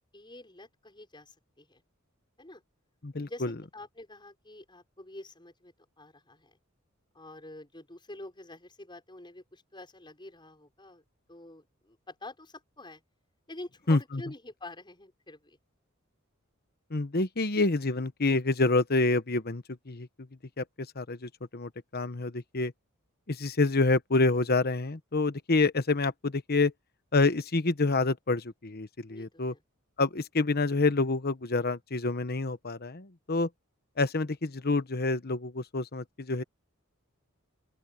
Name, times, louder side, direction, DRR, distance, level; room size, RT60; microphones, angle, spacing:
voice 1, 0.1-1.8 2.4-2.6 3.2-6.6 7.1-13.0 13.5-15.6 29.1-29.6, left 2 dB, 25° left, 5.8 m, -47 dB
voice 2, 3.0-3.5 13.9-14.0 16.9-20.1 20.6-20.7 21.0-22.7 23.3-26.7 27.1-29.5 30.0-33.5 34.0-36.4, left 3 dB, 50° left, 1.1 m, -27 dB
open air
head